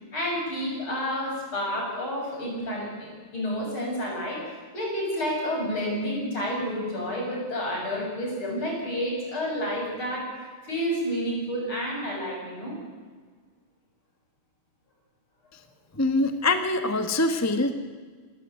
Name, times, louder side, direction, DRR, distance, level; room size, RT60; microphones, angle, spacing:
voice 1, 0.0-10.3 10.7-12.8, equal, 70° left, -1 dB, 7.9 m, -30 dB
voice 2, 16.0-17.7, left 2 dB, 10° left, 8 dB, 0.9 m, -24 dB
28.0 x 13.5 x 9.1 m, 1.5 s
omnidirectional pair, 2.4 m